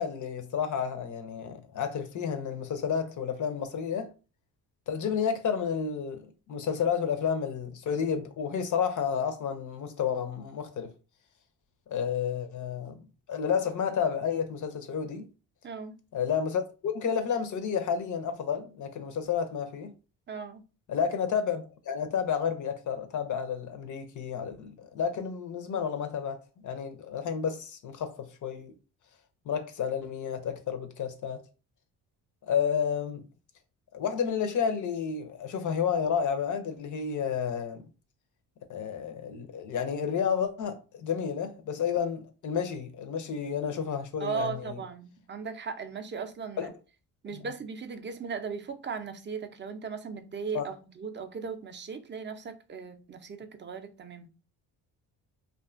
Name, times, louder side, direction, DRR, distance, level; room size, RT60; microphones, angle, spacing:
voice 1, 0.0-4.1 4.9-10.9 11.9-13.0 13.3-15.3 16.1-19.9 20.9-28.7 29.5-31.4 32.5-33.2 33.9-37.8 38.7-44.8 46.6-46.7 50.5-50.7, left 7 dB, 50° left, 0.5 m, -31 dB
voice 2, 15.6-16.0 20.3-20.6 44.2-46.7 47.2-54.3, right 6 dB, 30° right, 0.4 m, -37 dB
2.5 x 2.2 x 2.4 m
supercardioid pair, 70°, 40 cm